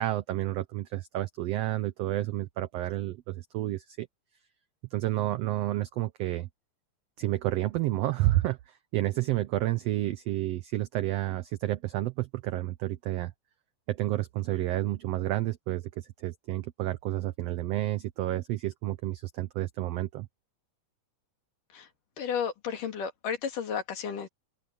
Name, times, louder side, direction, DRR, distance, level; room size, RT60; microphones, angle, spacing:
voice 1, 0.0-4.1 4.9-6.5 7.2-13.3 13.9-20.3, right 15 dB, 85° right, 1.4 m, -30 dB
voice 2, 22.2-24.3, left 7 dB, 85° left, 4.0 m, -33 dB
open air
omnidirectional pair, 3.6 m